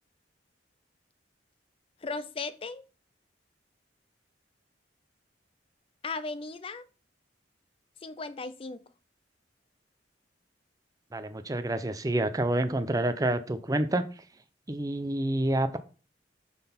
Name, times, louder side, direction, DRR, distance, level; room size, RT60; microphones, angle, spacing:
voice 1, 2.0-2.8 6.0-6.9 8.0-8.9, left 3 dB, 30° left, 0.5 m, -36 dB
voice 2, 11.1-14.1 14.7-15.8, right 1 dB, 20° right, 0.6 m, -28 dB
8.8 x 3.9 x 4.3 m
head